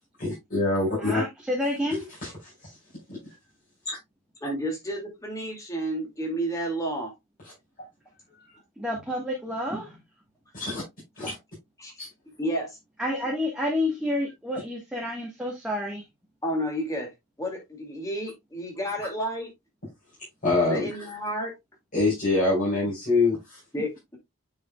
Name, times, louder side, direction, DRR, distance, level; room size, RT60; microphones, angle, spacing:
voice 1, 0.2-1.2 2.2-2.3 3.1-3.2 3.9-4.0 10.5-10.8 11.2-11.3 12.0-12.1 20.4-20.9 21.9-23.6, left 2 dB, 40° left, 4.6 m, -24 dB
voice 2, 1.0-2.0 8.8-10.0 13.0-16.0, left 1 dB, 5° right, 1.5 m, -29 dB
voice 3, 4.4-7.1 11.2-11.3 11.8-11.9 12.4-12.8 16.4-17.1 17.4-19.5 20.7-21.5 23.7-24.2, equal, 15° left, 2.3 m, -31 dB
9.2 x 4.9 x 2.3 m
head